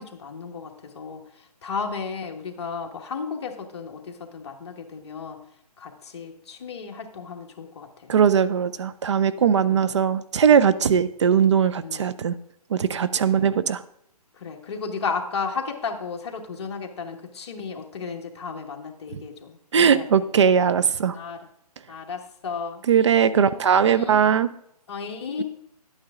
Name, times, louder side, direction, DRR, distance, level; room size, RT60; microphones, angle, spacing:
voice 1, 0.0-5.4 5.8-8.1 9.7-9.9 10.8-11.0 11.8-12.1 13.3-13.5 14.3-20.1 21.1-21.5 21.9-22.8 23.3-23.6 23.9-24.2 24.9-25.4, left 5 dB, 45° left, 2 dB, 1.3 m, -34 dB
voice 2, 8.1-12.4 12.7-13.8 19.7-21.2 22.9-24.5, right 7 dB, 45° right, 14 dB, 0.5 m, -20 dB
11.0 x 8.8 x 3.6 m, 0.72 s
hypercardioid pair, 160°, 20 cm